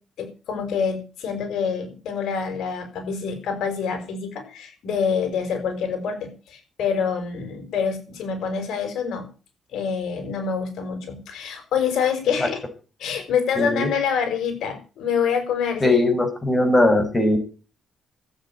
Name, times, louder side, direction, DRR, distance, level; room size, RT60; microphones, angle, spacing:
voice 1, 0.2-9.2 9.7-12.6 13.0-16.0, left 6 dB, 75° left, 6 dB, 5.9 m, -26 dB
voice 2, 13.6-13.9 15.8-17.4, left 1 dB, 20° left, 5 dB, 6.2 m, -19 dB
13.0 x 9.2 x 8.9 m, 0.36 s
cardioid pair, 90°, 0 cm